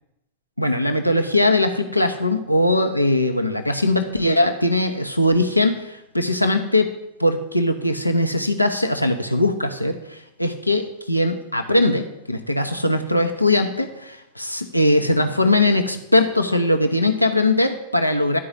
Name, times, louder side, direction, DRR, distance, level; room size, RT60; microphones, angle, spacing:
voice 1, 0.6-6.9 7.2-18.4, left 1 dB, 90° left, 6 dB, 0.6 m, -20 dB
11.0 x 4.8 x 8.1 m, 0.84 s
figure-of-eight pair, 90°, 0 cm